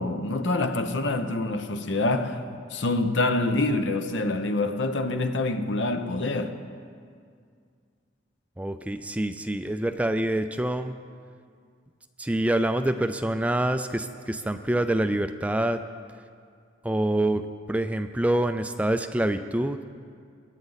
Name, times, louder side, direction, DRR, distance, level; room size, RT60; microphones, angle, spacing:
voice 1, 0.0-6.6, left 2 dB, 65° left, 0.9 m, -26 dB
voice 2, 8.6-10.9 12.2-15.8 16.8-17.4 17.7-19.8, right 1 dB, 5° right, 0.3 m, -26 dB
23.5 x 11.0 x 4.0 m
head